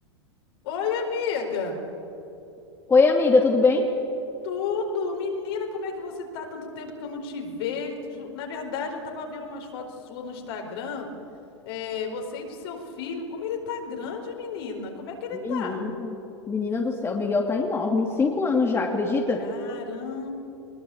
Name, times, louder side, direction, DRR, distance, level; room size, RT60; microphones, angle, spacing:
voice 1, 0.6-1.8 4.4-11.1 11.6-15.8 19.4-20.3, left 5 dB, 60° left, 2 dB, 4.6 m, -32 dB
voice 2, 2.9-3.9 15.3-16.1 16.5-19.4, left 3 dB, 15° left, 1 dB, 2.5 m, -22 dB
23.0 x 21.0 x 8.7 m, 2.9 s
hypercardioid pair, 95°, 15 cm